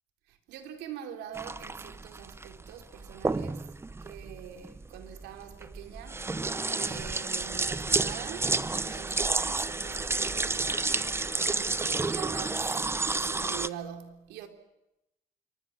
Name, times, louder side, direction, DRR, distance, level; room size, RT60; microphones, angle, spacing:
voice 1, 0.3-3.7 4.0-6.3 6.7-10.7 11.4-12.8 13.1-14.5, right 10 dB, 85° right, 3.6 m, -44 dB
sound 1, 1.3-13.7, right 3 dB, 15° right, 0.9 m, -31 dB
27.0 x 24.5 x 7.2 m
cardioid pair, 110°, 17 cm